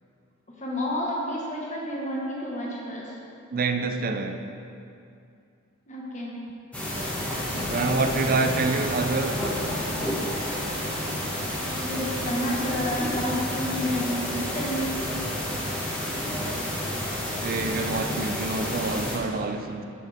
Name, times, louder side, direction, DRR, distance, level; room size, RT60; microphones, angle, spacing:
voice 1, 0.6-3.1 5.9-6.4 11.8-15.0, equal, 35° left, -4 dB, 1.5 m, -30 dB
voice 2, 3.5-4.4 7.0-7.1 7.7-9.5 17.4-19.8, right 3 dB, 45° right, 7 dB, 0.4 m, -27 dB
sound 1, 6.7-19.2, equal, 5° left, 1.2 m, -30 dB
9.8 x 6.0 x 3.6 m, 2.5 s
head